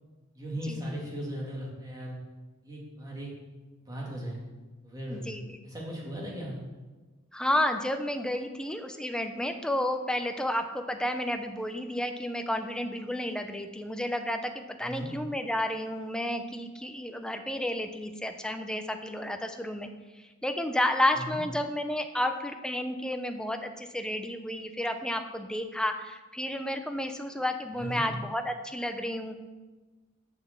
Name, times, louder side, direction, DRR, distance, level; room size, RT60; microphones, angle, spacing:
voice 1, 0.3-2.2 2.6-3.3 3.9-4.4 4.8-5.2 5.6-6.6 14.8-15.1 21.1-21.4 27.8-28.1, equal, 20° right, -4 dB, 2.5 m, -37 dB
voice 2, 5.1-5.6 7.3-19.9 20.4-29.4, left 1 dB, 5° left, 6 dB, 0.6 m, -31 dB
7.0 x 6.0 x 7.3 m, 1.3 s
head